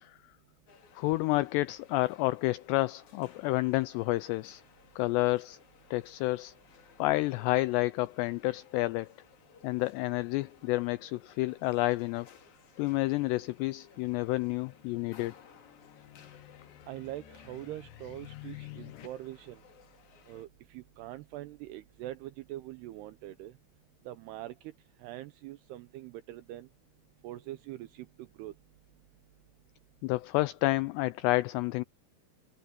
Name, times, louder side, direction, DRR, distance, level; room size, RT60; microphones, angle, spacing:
sound 1, 0.7-20.5, left 7 dB, 50° left, 3.0 m, -60 dB
voice 1, 1.0-4.6 5.0-5.6 5.9-6.5 7.0-9.1 9.6-12.3 12.8-15.3 30.0-31.8, left 20 dB, 90° left, 2.4 m, -29 dB
sound 2, 14.2-19.1, left 16 dB, 70° left, 2.0 m, -51 dB
voice 2, 16.9-19.6 20.3-23.5 24.1-24.7 25.0-26.7 27.2-28.5, right 14 dB, 85° right, 2.4 m, -43 dB
omnidirectional pair, 5.4 m